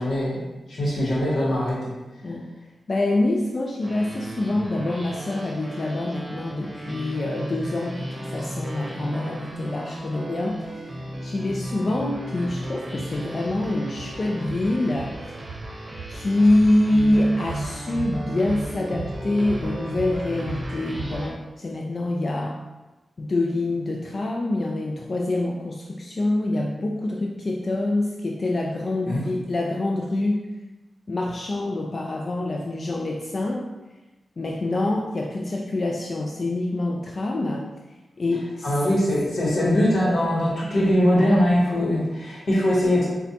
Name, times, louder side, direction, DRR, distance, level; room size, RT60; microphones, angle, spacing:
voice 1, 0.0-1.9 29.1-29.2 38.6-43.1, left 1 dB, 75° left, -6 dB, 1.1 m, -21 dB
voice 2, 2.9-10.9 11.2-15.2 16.1-22.6 23.2-30.4 31.1-33.7 34.4-37.7 38.2-38.9, left 2 dB, 55° left, 0 dB, 0.4 m, -25 dB
sound 1, 3.8-21.3, right 1 dB, 35° right, 0.8 m, -34 dB
4.9 x 2.2 x 2.8 m, 1.1 s
cardioid pair, 45°, 0 cm